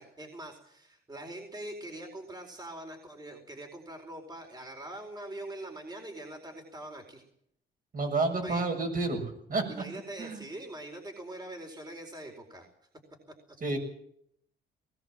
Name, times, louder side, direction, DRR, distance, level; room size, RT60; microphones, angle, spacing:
voice 1, 0.0-7.2 8.4-8.7 9.7-12.7, right 1 dB, 20° right, 2 dB, 4.5 m, -43 dB
voice 2, 7.9-9.6 10.2-10.4 13.6-13.8, right 3 dB, 45° right, 4 dB, 7.1 m, -30 dB
20.0 x 17.5 x 7.5 m, 0.69 s
cardioid pair, 90°, 20 cm